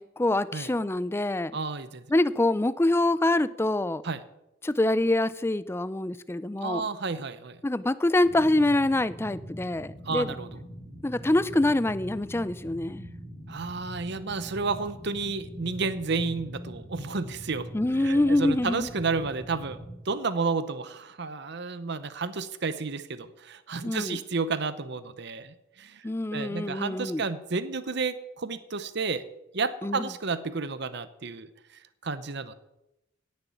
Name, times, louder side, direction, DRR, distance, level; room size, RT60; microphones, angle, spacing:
voice 1, 0.0-1.6 2.1-4.0 4.6-6.8 7.6-10.3 11.0-13.1 17.7-18.9 23.8-24.2 26.0-27.2 29.8-30.1, left 1 dB, 10° left, 16 dB, 0.4 m, -25 dB
voice 2, 1.5-2.0 4.0-4.2 6.6-7.6 10.0-10.5 13.5-17.7 18.0-26.0 26.3-29.3 29.5-31.5 32.0-32.5, right 4 dB, 55° right, 12 dB, 0.9 m, -31 dB
sound 1, 8.2-19.9, equal, 25° right, 3.6 m, -43 dB
17.5 x 6.9 x 7.1 m, 0.89 s
head